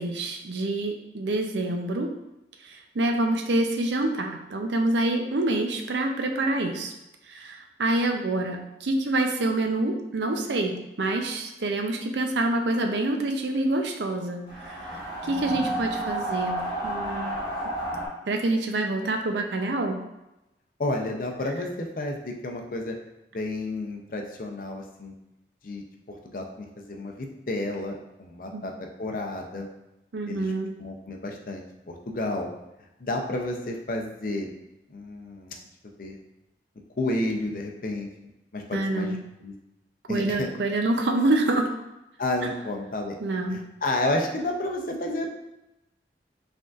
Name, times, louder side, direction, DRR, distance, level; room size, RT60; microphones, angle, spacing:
voice 1, 0.0-2.1 2.6-6.9 7.3-17.4 18.3-20.0 28.5-28.7 30.1-30.7 38.7-39.2 40.1-41.7 43.2-43.6, right 2 dB, 80° right, 4 dB, 0.5 m, -27 dB
sound 1, 14.5-18.1, right 1 dB, 25° left, 1.1 m, -31 dB
voice 2, 20.8-23.0 23.3-25.1 25.6-28.7 29.0-29.7 30.3-30.5 30.8-32.5 33.0-34.5 34.9-35.6 36.0-36.2 37.0-38.1 38.5-39.5 40.1-40.5 42.2-43.2 43.5-45.3, left 1 dB, 50° left, 2 dB, 0.5 m, -31 dB
5.0 x 3.5 x 2.4 m, 0.93 s
head